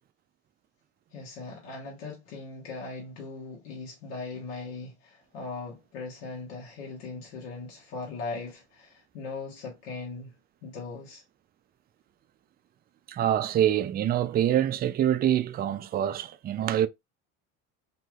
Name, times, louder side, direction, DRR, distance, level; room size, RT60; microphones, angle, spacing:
voice 1, 1.1-10.3 10.6-11.2, left 3 dB, 80° left, 1.2 m, -39 dB
voice 2, 13.1-16.9, right 11 dB, 30° right, 0.3 m, -25 dB
3.1 x 2.7 x 2.3 m
supercardioid pair, 85°, 32 cm